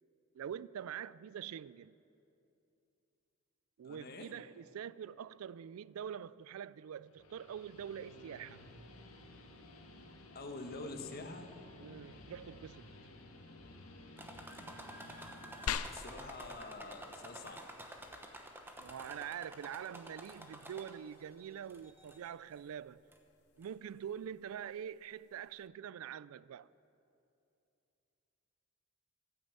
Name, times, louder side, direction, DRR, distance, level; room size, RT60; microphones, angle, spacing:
voice 1, 0.3-2.0 3.8-8.6 11.8-12.9 18.8-23.0 23.6-26.7, right 8 dB, 70° right, 0.3 m, -45 dB
voice 2, 3.8-4.3 10.3-11.5 15.8-17.7, left 3 dB, 45° left, 1.3 m, -46 dB
Guitar, 7.0-15.7, left 1 dB, 70° left, 1.6 m, -55 dB
sound 1, 14.2-21.2 21.7-22.3 23.1-23.2 23.6-23.7, right 1 dB, 10° right, 1.0 m, -51 dB
sound 2, 15.7-25.7, left 7 dB, 90° left, 0.5 m, -48 dB
15.0 x 9.5 x 8.2 m
head